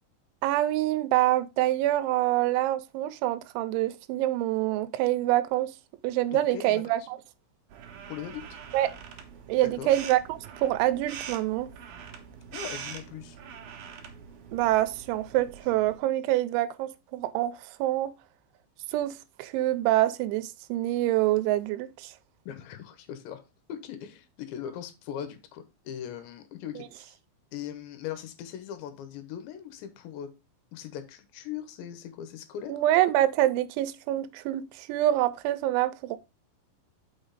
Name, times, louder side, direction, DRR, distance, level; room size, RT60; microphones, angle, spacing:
voice 1, 0.4-5.8 6.0-7.2 8.7-8.9 9.5-11.7 14.5-18.1 18.9-22.1 32.7-36.2, right 14 dB, 85° right, 3.0 m, -26 dB
voice 2, 6.3-7.1 8.1-8.5 9.8-9.9 12.5-13.4 22.5-23.4 23.7-27.2 27.5-30.3 30.7-32.7, left 9 dB, 80° left, 3.2 m, -40 dB
sound 1, 7.7-16.0, right 7 dB, 65° right, 2.5 m, -44 dB
6.1 x 6.1 x 4.0 m
omnidirectional pair, 5.3 m